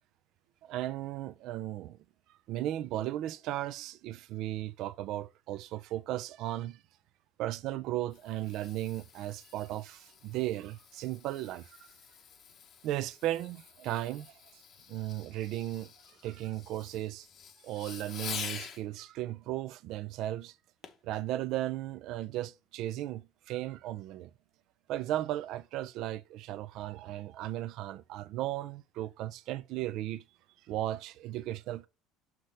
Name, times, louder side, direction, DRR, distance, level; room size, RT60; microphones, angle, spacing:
voice 1, 0.6-2.0 2.5-6.8 7.4-11.9 12.8-14.6 14.9-15.9 16.2-17.3 17.6-20.6 21.0-24.3 24.9-30.2 30.7-31.9, right 14 dB, 65° right, 0.5 m, -36 dB
Fireworks, 7.8-18.8 20.8-21.1 21.7-21.8, left 7 dB, 50° left, 1.1 m, -47 dB
6.3 x 6.0 x 3.4 m
supercardioid pair, 100°, 0 cm